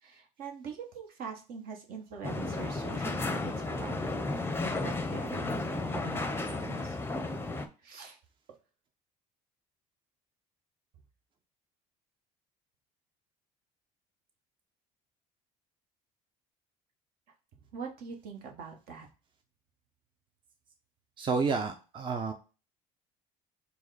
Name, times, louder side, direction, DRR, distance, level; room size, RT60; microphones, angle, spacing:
voice 1, 0.0-4.1 4.4-7.0 7.8-8.2 17.7-19.1, right 5 dB, 65° right, 2 dB, 1.2 m, -44 dB
sound 1, 2.2-7.7, left 2 dB, 15° left, 0.6 m, -33 dB
voice 2, 21.2-22.3, right 4 dB, 30° right, 5 dB, 0.6 m, -30 dB
4.6 x 2.2 x 4.0 m, 0.33 s
supercardioid pair, 75°, 17 cm